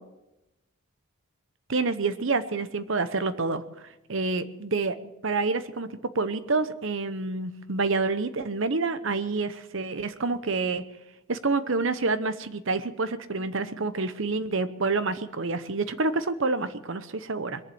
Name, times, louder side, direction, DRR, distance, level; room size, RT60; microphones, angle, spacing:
voice 1, 1.7-3.6 4.1-5.0 5.2-10.8 11.3-17.6, right 3 dB, 60° right, 12 dB, 0.9 m, -28 dB
22.0 x 7.4 x 7.8 m, 0.93 s
head